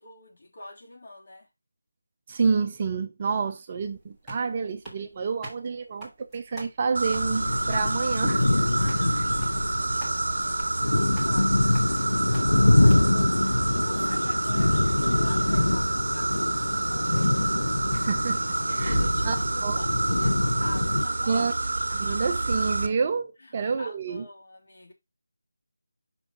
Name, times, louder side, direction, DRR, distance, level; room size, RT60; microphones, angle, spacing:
voice 1, 0.0-1.5 8.7-17.3 18.0-18.1 18.7-21.5 23.4-24.9, left 1 dB, 45° left, 2.7 m, -46 dB
voice 2, 2.3-8.4 17.9-18.4 18.8-19.0 19.2-19.4 19.6-19.8 21.3-21.5 21.9-24.2, right 5 dB, 25° right, 0.6 m, -28 dB
sound 1, 3.8-13.5, right 1 dB, ahead, 1.4 m, -48 dB
sound 2, 6.9-22.9, right 2 dB, 50° right, 1.5 m, -28 dB
sound 3, 7.1-21.0, left 1 dB, 90° left, 0.4 m, -25 dB
6.2 x 5.6 x 4.0 m
figure-of-eight pair, 175°, 0 cm